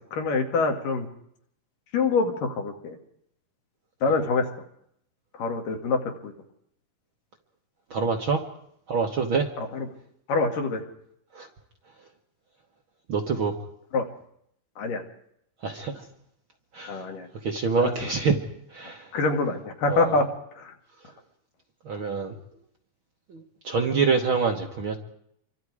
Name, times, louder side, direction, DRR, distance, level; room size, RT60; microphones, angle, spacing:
voice 1, 0.1-1.1 1.9-3.0 4.0-4.5 5.3-6.3 9.6-9.9 10.3-10.8 13.9-14.1 14.8-15.0 16.9-17.3 19.1-20.3 20.6-20.7, left 3 dB, 75° left, 4 dB, 3.8 m, -25 dB
voice 2, 7.9-8.5 8.9-9.5 11.3-11.5 13.1-13.6 15.6-16.1 16.7-17.0 17.4-18.4 18.7-19.1 19.9-20.2 21.8-22.4 23.3-25.0, right 5 dB, 55° right, 3 dB, 1.6 m, -26 dB
27.0 x 24.5 x 4.9 m, 0.73 s
omnidirectional pair, 3.8 m